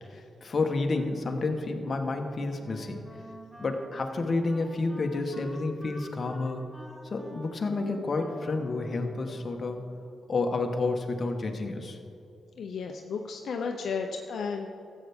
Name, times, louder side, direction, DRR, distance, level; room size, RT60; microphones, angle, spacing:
voice 1, 0.1-3.0 3.6-6.6 7.0-9.8 10.3-12.0, left 3 dB, 50° left, 4 dB, 1.2 m, -30 dB
Wind instrument woodwind instrument, 2.6-10.0, equal, 5° right, 2.4 m, -48 dB
voice 2, 12.6-14.7, left 5 dB, 75° left, 3 dB, 0.6 m, -33 dB
14.0 x 8.1 x 3.6 m, 2.7 s
cardioid pair, 70°, 0 cm